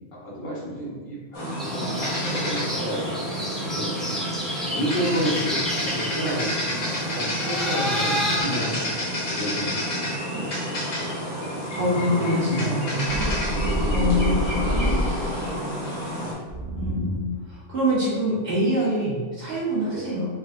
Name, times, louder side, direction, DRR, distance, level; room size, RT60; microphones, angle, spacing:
voice 1, 0.1-4.2 4.6-10.6 11.4-11.7 12.0-13.0 13.5-15.6 19.8-20.1, equal, 25° left, -7 dB, 1.3 m, -32 dB
sound 1, 1.3-16.3, equal, 80° left, 1.7 m, -29 dB
sound 2, 1.6-8.4, equal, ahead, 0.6 m, -31 dB
voice 2, 11.7-13.2 13.9-14.6 16.7-20.3, equal, 50° right, -8 dB, 1.7 m, -25 dB
sound 3, 13.0-15.5 16.4-17.4, equal, 85° right, 1.1 m, -26 dB
4.1 x 3.9 x 2.6 m, 1.5 s
omnidirectional pair, 1.3 m